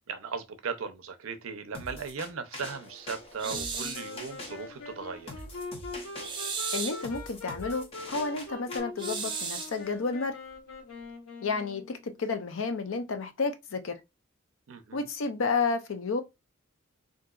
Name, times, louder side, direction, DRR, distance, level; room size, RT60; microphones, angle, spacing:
voice 1, 0.1-5.3 14.7-15.0, right 5 dB, 80° right, 0.5 m, -37 dB
sound 1, 1.7-8.8, left 1 dB, 30° left, 0.7 m, -44 dB
Wind instrument woodwind instrument, 3.4-12.2, left 3 dB, 85° left, 1.0 m, -43 dB
sound 2, 3.4-4.1 6.2-7.1 9.0-9.8, right 5 dB, 25° right, 0.5 m, -34 dB
voice 2, 6.7-10.4 11.4-13.9 14.9-16.2, left 4 dB, 70° left, 0.5 m, -31 dB
3.8 x 2.6 x 2.3 m
head